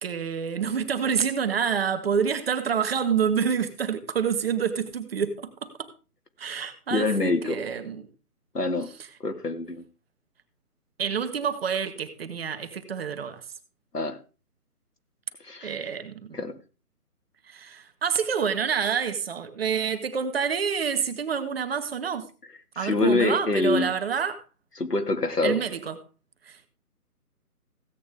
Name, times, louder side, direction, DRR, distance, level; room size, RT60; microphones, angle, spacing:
voice 1, 0.0-5.9 6.4-8.1 11.0-13.4 15.6-16.4 17.5-22.3 22.7-24.4 25.4-26.0 26.5-26.7, right 7 dB, 40° right, 1.5 m, -28 dB
voice 2, 6.9-7.6 8.5-8.9 9.2-9.8 13.9-14.2 15.4-15.9 16.3-16.5 22.8-23.9 24.8-25.6, left 3 dB, 90° left, 2.1 m, -25 dB
16.5 x 8.5 x 3.6 m
figure-of-eight pair, 145°, 46 cm